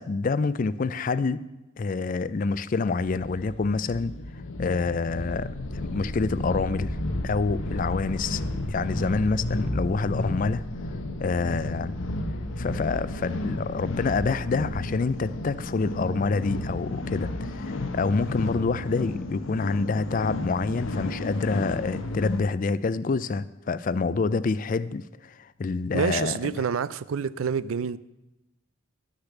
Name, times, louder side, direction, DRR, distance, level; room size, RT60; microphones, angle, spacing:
voice 1, 0.0-1.4 1.8-4.1 4.6-7.0 7.2-8.4 8.7-10.6 11.2-11.9 12.6-26.5, left 4 dB, 40° left, 0.4 m, -27 dB
sound 1, 3.1-22.5, left 1 dB, 70° left, 0.9 m, -33 dB
sound 2, 4.9-18.3, equal, ahead, 1.6 m, -42 dB
voice 2, 25.9-28.0, right 6 dB, 80° right, 0.4 m, -27 dB
11.5 x 6.5 x 7.1 m
head